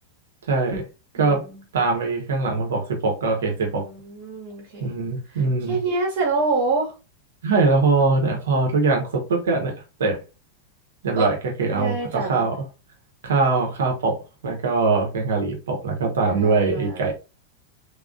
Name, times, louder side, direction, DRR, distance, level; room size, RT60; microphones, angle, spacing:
voice 1, 0.5-0.9 1.1-1.4 1.7-3.9 4.8-5.8 7.4-9.7 10.0-10.2 11.0-12.6 13.2-17.1, right 3 dB, 65° right, 1.2 m, -22 dB
voice 2, 1.1-1.6 3.6-4.9 5.7-6.9 11.2-11.3 11.7-12.5 16.4-17.1, right 3 dB, 45° right, 1.4 m, -26 dB
3.6 x 3.0 x 2.7 m
figure-of-eight pair, 90°, 0 cm